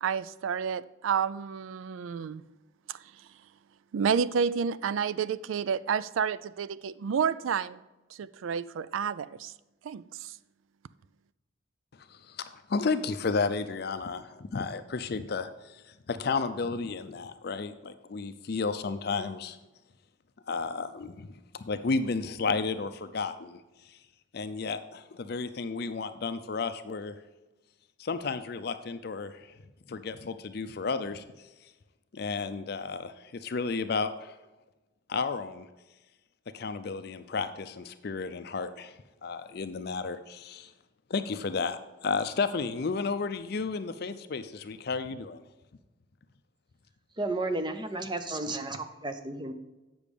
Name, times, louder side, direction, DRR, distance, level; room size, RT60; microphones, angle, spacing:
voice 1, 0.0-2.4 3.9-7.8 8.2-9.5 9.8-10.3, right 7 dB, 80° right, 0.3 m, -30 dB
voice 2, 12.1-12.4 12.7-15.8 16.1-19.6 20.5-21.3 21.5-23.6 24.3-27.1 28.0-29.5 29.9-31.2 32.1-34.4 35.1-35.7 36.5-38.9 39.2-40.7 41.1-45.4, left 4 dB, 50° left, 0.5 m, -32 dB
voice 3, 47.2-49.5, right 2 dB, 25° right, 0.6 m, -33 dB
8.4 x 6.1 x 5.2 m
head